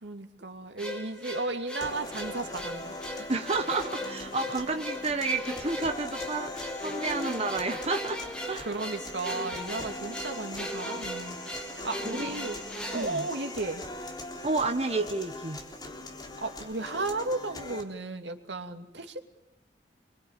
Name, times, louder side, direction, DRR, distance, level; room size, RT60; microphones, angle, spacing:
voice 1, 0.0-3.3 8.7-11.4 11.8-12.6 12.9-13.8 16.4-19.3, right 3 dB, 85° right, 5 dB, 2.6 m, -34 dB
sound 1, 0.8-14.0, left 1 dB, 5° left, 2.9 m, -39 dB
sound 2, 1.8-17.8, left 2 dB, 25° left, 3.7 m, -41 dB
voice 2, 3.3-8.2 8.5-8.7 12.0-12.3 12.9-13.3 14.4-15.6, right 3 dB, 35° right, 5 dB, 1.5 m, -30 dB
27.5 x 23.5 x 9.2 m, 0.85 s
head